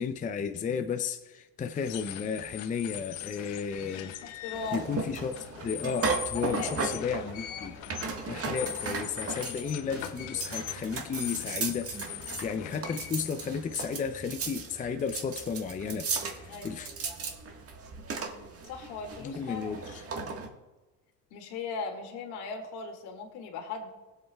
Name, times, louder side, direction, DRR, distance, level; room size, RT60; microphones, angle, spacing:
voice 1, 0.0-4.4 4.7-5.3 5.6-7.8 8.3-16.9 19.2-20.0, left 6 dB, 20° left, 7 dB, 0.5 m, -33 dB
sound 1, 1.7-14.5, left 13 dB, 90° left, 0.7 m, -42 dB
voice 2, 4.2-5.0 6.3-7.2 7.5-7.7 16.5-16.7 18.6-19.7 21.3-23.9, left 4 dB, 65° left, 3 dB, 2.3 m, -39 dB
sound 2, 4.5-20.5, right 4 dB, 35° right, 1.5 m, -36 dB
19.5 x 8.1 x 2.3 m, 1.1 s
supercardioid pair, 95°, 40 cm